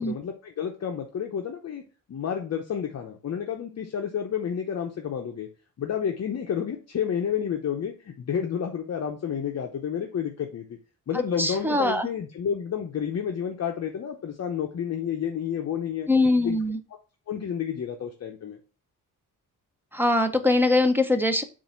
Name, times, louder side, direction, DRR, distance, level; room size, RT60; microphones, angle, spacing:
voice 1, 0.0-1.8 2.1-5.5 5.8-10.7 11.1-16.1 16.4-16.6 17.3-18.6, left 8 dB, 50° left, 3 dB, 0.7 m, -30 dB
voice 2, 11.4-12.1 16.1-16.8 19.9-21.4, left 2 dB, 5° right, 8 dB, 0.6 m, -22 dB
7.4 x 2.5 x 5.5 m, 0.34 s
wide cardioid pair, 165°, 34 cm